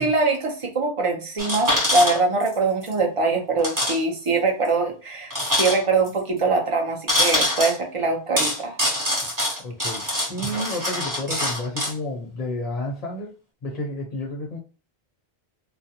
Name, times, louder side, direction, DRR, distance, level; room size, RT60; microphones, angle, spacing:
voice 1, 0.0-8.7, right 3 dB, 40° right, 0.5 m, -23 dB
sound 1, 1.4-2.6 2.8-2.9 3.6-4.0 4.3-4.4 5.3-6.1 7.1-7.8 8.4-11.9, left 1 dB, 20° right, 1.0 m, -24 dB
voice 2, 9.6-10.0 10.3-13.3 13.6-14.6, left 1 dB, 45° left, 0.6 m, -30 dB
2.4 x 2.0 x 2.7 m
omnidirectional pair, 1.1 m